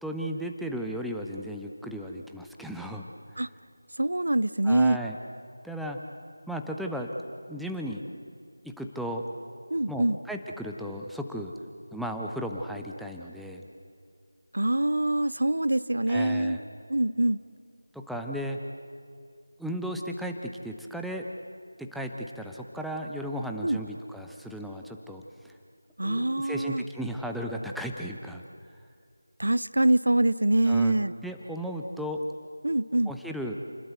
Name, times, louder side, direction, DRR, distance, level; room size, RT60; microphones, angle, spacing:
voice 1, 0.0-3.0 3.3-3.4 4.6-5.2 5.6-6.0 6.5-7.1 7.5-8.0 8.6-9.2 9.9-11.5 11.9-13.6 16.1-16.6 17.9-18.6 19.6-21.3 21.8-25.5 26.0-28.4 30.7-31.0 31.2-32.2 33.1-33.5, equal, ahead, 1 dB, 0.8 m, -35 dB
voice 2, 4.0-5.0 9.7-10.2 14.5-16.6 16.9-17.4 23.6-23.8 26.0-26.8 29.4-31.1 32.6-33.1, right 1 dB, 70° right, 16 dB, 0.7 m, -24 dB
29.0 x 20.5 x 8.1 m, 2.4 s
figure-of-eight pair, 165°, 0 cm